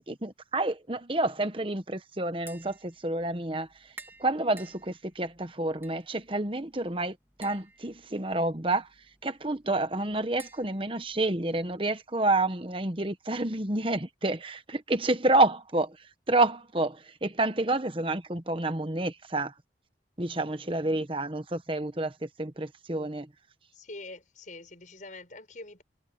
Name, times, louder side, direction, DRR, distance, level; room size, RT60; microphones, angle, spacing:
voice 1, 0.0-3.7 4.2-8.9 9.2-16.0 16.3-19.5 20.2-23.3, right 2 dB, 30° right, 1.2 m, -29 dB
Tap, 2.3-11.8, right 3 dB, 10° right, 3.7 m, -55 dB
voice 2, 23.7-25.8, left 2 dB, 45° left, 6.8 m, -44 dB
head